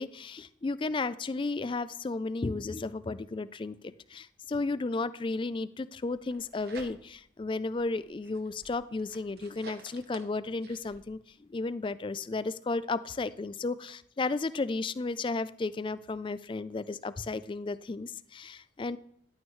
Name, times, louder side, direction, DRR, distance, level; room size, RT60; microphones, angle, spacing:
voice 1, 0.0-19.0, left 3 dB, 25° left, 15 dB, 0.3 m, -34 dB
sound 1, 6.1-7.3 7.8-11.0, right 4 dB, 50° right, 1.0 m, -51 dB
11.0 x 9.4 x 3.2 m, 0.67 s
head